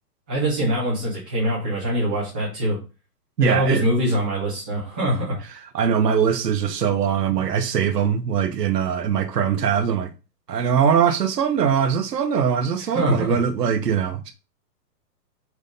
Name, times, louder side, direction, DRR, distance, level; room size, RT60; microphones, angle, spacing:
voice 1, 0.3-2.8 3.4-5.4 12.9-13.4, equal, 5° right, 0.7 m, -23 dB
voice 2, 3.4-3.8 5.5-10.1 10.5-14.3, right 7 dB, 75° right, 1.3 m, -21 dB
6.5 x 3.8 x 5.3 m
hypercardioid pair, 180°, 48 cm